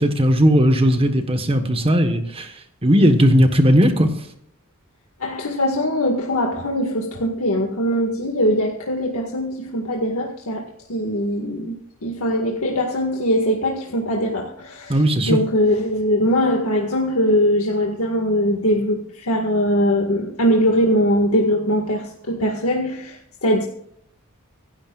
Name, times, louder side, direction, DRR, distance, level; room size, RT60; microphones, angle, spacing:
voice 1, 0.0-2.5 2.8-4.1 14.9-15.4, equal, 25° right, 7 dB, 1.3 m, -16 dB
voice 2, 5.2-23.6, equal, 90° left, 0 dB, 1.9 m, -21 dB
25.0 x 11.5 x 2.5 m, 0.70 s
head